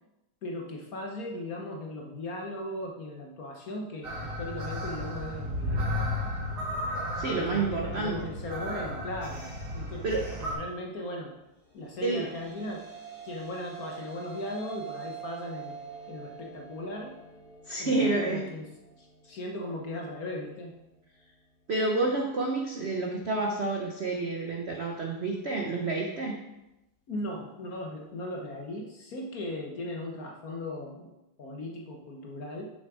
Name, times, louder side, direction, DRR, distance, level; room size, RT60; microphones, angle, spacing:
voice 1, 0.4-5.9 7.2-10.0 10.4-11.3 11.7-12.8 13.2-15.8 16.1-17.2 17.8-18.7 19.0-20.7 27.1-31.1 31.4-32.7, left 1 dB, 55° left, 1 dB, 1.1 m, -38 dB
sound 1, 4.0-10.5, left 1 dB, 50° right, 2.3 m, -34 dB
voice 2, 7.2-8.3 10.0-10.3 12.0-12.2 17.7-18.5 21.7-26.4, right 3 dB, 70° right, 0 dB, 0.6 m, -29 dB
sound 2, 11.7-20.3, right 6 dB, 85° left, 2.9 m, -45 dB
7.2 x 6.3 x 4.8 m, 0.95 s
omnidirectional pair, 2.4 m